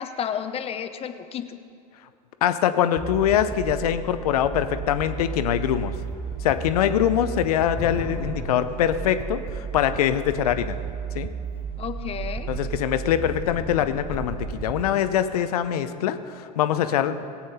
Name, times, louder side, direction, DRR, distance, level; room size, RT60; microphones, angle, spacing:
voice 1, 0.0-1.6 11.8-12.5, left 8 dB, 30° left, 9 dB, 0.8 m, -31 dB
voice 2, 2.4-5.9 6.4-10.8 11.1-11.3 12.5-17.3, left 10 dB, 70° left, 11 dB, 0.7 m, -23 dB
sound 1, 3.0-14.9, right 6 dB, 10° right, 0.7 m, -34 dB
Thunder / Rain, 5.3-5.4 5.7-9.8 10.5-11.0 11.4-11.6 11.8-15.6, left 3 dB, 10° left, 2.4 m, -40 dB
18.5 x 8.7 x 4.3 m, 2.4 s
hypercardioid pair, 85°, 20 cm